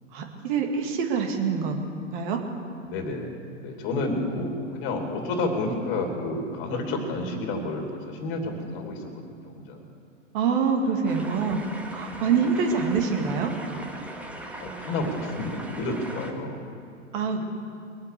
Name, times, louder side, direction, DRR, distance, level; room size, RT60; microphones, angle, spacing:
voice 1, 0.1-1.8 2.1-2.4 10.3-11.6 11.9-13.5 17.1-17.4, right 5 dB, 40° right, 3 dB, 2.1 m, -25 dB
voice 2, 2.8-3.3 3.6-9.8 12.3-12.5 14.6-16.6, left 2 dB, 30° left, 3 dB, 2.8 m, -30 dB
sound 1, 11.1-16.3, right 1 dB, 5° right, 0.9 m, -40 dB
22.5 x 8.2 x 6.7 m, 2.5 s
figure-of-eight pair, 115°, 38 cm